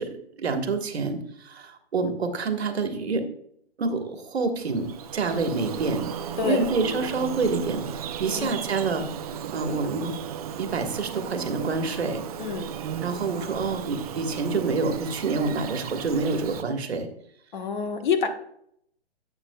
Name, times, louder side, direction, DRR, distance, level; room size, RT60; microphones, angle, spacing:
voice 1, 0.0-3.3 3.8-9.1 9.5-10.2 10.6-12.2 13.0-17.1, right 4 dB, 75° right, 6 dB, 1.5 m, -27 dB
Bird vocalization bird call bird song, 4.6-16.6, right 7 dB, 35° right, 0.6 m, -35 dB
voice 2, 12.4-12.7 17.5-18.3, left 6 dB, 50° left, 7 dB, 1.2 m, -26 dB
9.4 x 8.3 x 2.3 m, 0.70 s
hypercardioid pair, 145°, 32 cm